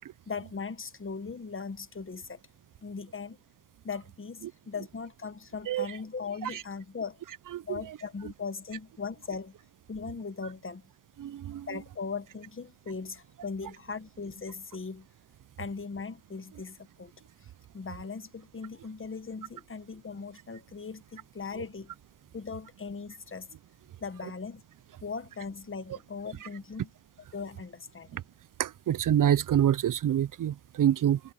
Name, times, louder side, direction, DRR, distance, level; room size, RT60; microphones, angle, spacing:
voice 1, 0.3-2.4 2.8-3.4 3.8-7.2 7.6-9.5 9.9-10.8 11.7-15.1 15.6-17.1 17.7-21.9 22.3-23.5 24.0-24.6 25.0-26.9 27.3-28.2, left 5 dB, 35° left, 1.2 m, -39 dB
voice 2, 7.5-8.0 11.2-11.7 26.4-26.5 28.1-28.2 28.6-31.2, right 10 dB, 60° right, 0.5 m, -26 dB
wide cardioid pair, 105°, 36 cm